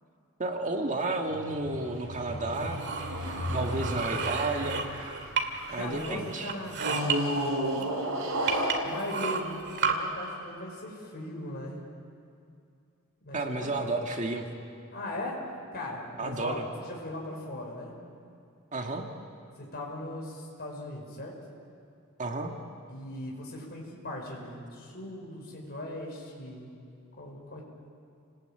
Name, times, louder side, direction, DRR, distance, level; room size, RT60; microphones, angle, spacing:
voice 1, 0.4-2.9 3.5-4.9 5.7-6.5 13.3-14.5 16.2-16.7 18.7-19.0 22.2-22.5, right 2 dB, 35° right, 3 dB, 1.9 m, -32 dB
sound 1, 1.3-6.0 6.7-10.3, equal, 75° right, 5.6 m, -33 dB
sound 2, 2.5-5.7 6.0-7.2 7.8-7.9 8.5-9.9, right 6 dB, 55° right, 2.2 m, -32 dB
voice 2, 5.8-7.5 7.7-7.9 8.8-11.8 13.2-14.0 14.9-15.4 15.7-18.0 19.6-21.4 22.9-26.7 27.2-27.6, left 1 dB, 50° left, -2 dB, 5.5 m, -39 dB
29.0 x 19.5 x 9.0 m, 2.4 s
head